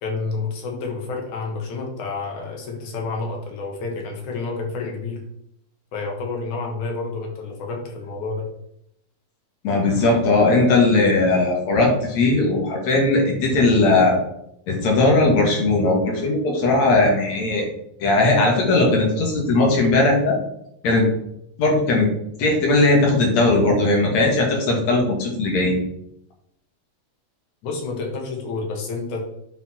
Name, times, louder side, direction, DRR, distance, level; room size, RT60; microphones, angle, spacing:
voice 1, 0.0-5.2 5.9-8.5 27.6-29.2, left 3 dB, 85° left, 1 dB, 3.1 m, -29 dB
voice 2, 9.6-14.2 14.7-17.7 18.0-20.4 20.8-21.1 21.6-22.1 22.4-25.8, left 2 dB, 70° left, 0 dB, 3.2 m, -18 dB
10.5 x 4.7 x 4.5 m, 0.76 s
omnidirectional pair, 3.3 m